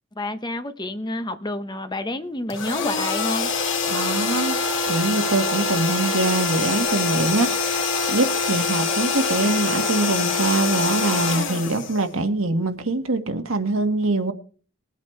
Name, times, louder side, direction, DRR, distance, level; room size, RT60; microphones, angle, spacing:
voice 1, 0.1-3.5, left 1 dB, 20° left, 0.9 m, -29 dB
sound 1, 2.5-12.5, left 4 dB, 60° left, 2.1 m, -24 dB
voice 2, 3.9-4.6 4.9-14.3, right 2 dB, 75° right, 1.6 m, -23 dB
20.5 x 8.4 x 3.3 m
head